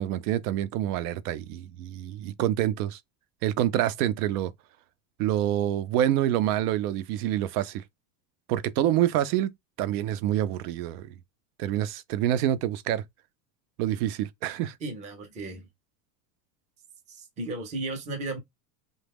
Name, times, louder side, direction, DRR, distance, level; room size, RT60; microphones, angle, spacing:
voice 1, 0.0-3.0 3.4-4.5 5.2-7.8 8.5-9.5 9.8-11.1 11.6-13.0 13.8-14.7, right 12 dB, 75° right, 0.6 m, -27 dB
voice 2, 14.8-15.7 17.1-18.4, right 2 dB, 15° right, 0.5 m, -35 dB
3.0 x 2.2 x 3.4 m
cardioid pair, 165°, 46 cm